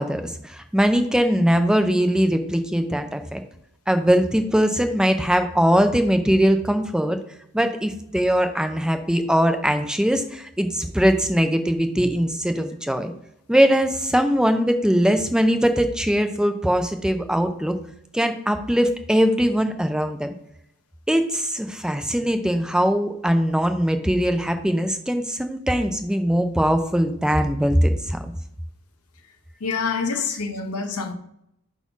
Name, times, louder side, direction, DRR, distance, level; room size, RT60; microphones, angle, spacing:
voice 1, 0.0-3.4 3.9-7.2 7.5-13.1 13.5-17.8 18.1-20.3 21.1-28.3, equal, 5° right, 0.5 m, -21 dB
voice 2, 29.6-31.1, left 5 dB, 85° left, 1.0 m, -26 dB
5.4 x 4.2 x 6.0 m
head